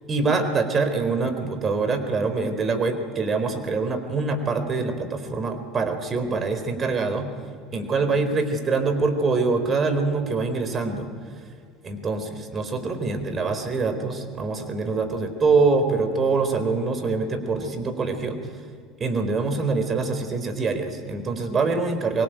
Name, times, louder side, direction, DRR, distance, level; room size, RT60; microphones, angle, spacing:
voice 1, 0.1-7.3 7.7-11.1 11.8-18.6 19.0-22.2, right 4 dB, 35° right, 9 dB, 4.2 m, -24 dB
24.5 x 22.0 x 9.2 m, 2.2 s
hypercardioid pair, 65°, 0 cm